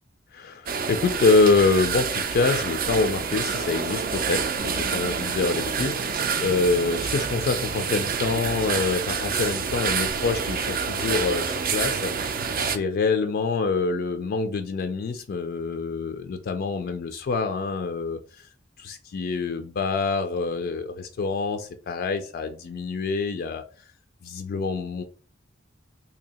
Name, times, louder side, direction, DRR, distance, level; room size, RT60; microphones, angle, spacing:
voice 1, 0.3-12.3 12.6-18.5 18.8-23.6 24.2-25.0, left 4 dB, 50° left, 7 dB, 0.3 m, -26 dB
sound 1, 0.7-12.8, right 6 dB, 45° right, 0.4 m, -27 dB
2.7 x 2.7 x 4.0 m, 0.41 s
head